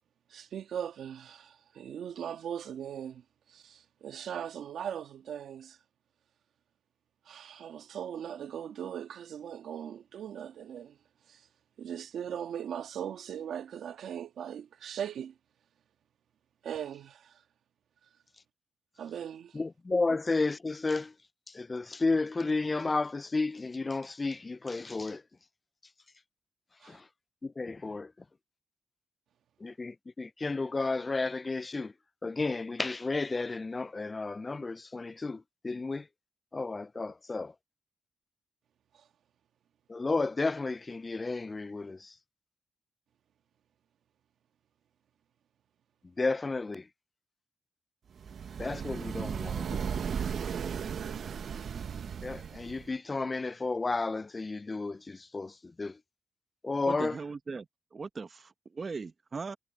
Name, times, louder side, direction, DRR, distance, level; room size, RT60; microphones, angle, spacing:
voice 1, 0.3-3.2 3.5-5.8 7.2-11.0 11.3-11.5 11.8-15.3 16.6-17.4 19.0-19.6 26.8-27.0 38.9-39.0 49.6-51.3, right 9 dB, 80° right, 1.5 m, -40 dB
voice 2, 19.5-21.1 21.5-25.2 26.8-27.1 27.4-28.1 29.6-31.9 32.2-36.1 36.5-37.5 39.9-42.1 46.2-46.9 48.6-49.8 52.2-56.0 56.6-57.2, left 3 dB, 30° left, 0.3 m, -32 dB
sound 1, 48.2-52.9, right 7 dB, 65° right, 1.0 m, -36 dB
voice 3, 56.9-59.6, right 4 dB, 40° right, 1.1 m, -39 dB
cardioid pair, 85°, 0 cm